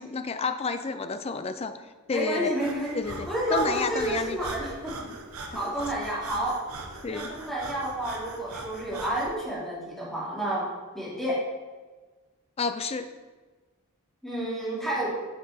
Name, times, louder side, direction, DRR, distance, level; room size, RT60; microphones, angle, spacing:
voice 1, 0.0-1.7 2.1-2.5 2.9-4.4 5.6-5.7 7.0-7.3 12.6-13.1, left 4 dB, 30° left, 10 dB, 0.4 m, -30 dB
voice 2, 2.1-3.0 3.3-4.9 5.5-6.6 7.1-10.7 10.9-11.4 14.2-15.1, right 1 dB, ahead, -8 dB, 2.7 m, -30 dB
Breathing, 2.6-9.3, right 3 dB, 75° right, 1.1 m, -41 dB
9.2 x 5.9 x 4.3 m, 1.3 s
head